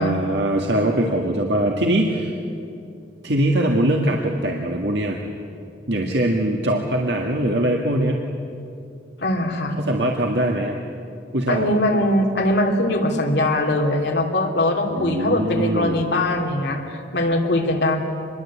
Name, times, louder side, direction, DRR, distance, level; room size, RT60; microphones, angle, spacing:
voice 1, 0.0-2.3 3.2-5.2 5.9-8.2 9.8-10.8 11.3-11.7 14.9-16.1, right 1 dB, 75° right, 0 dB, 1.9 m, -22 dB
voice 2, 9.2-9.8 11.5-18.0, left 1 dB, 70° left, 2 dB, 3.1 m, -21 dB
26.0 x 21.5 x 8.6 m, 2.5 s
head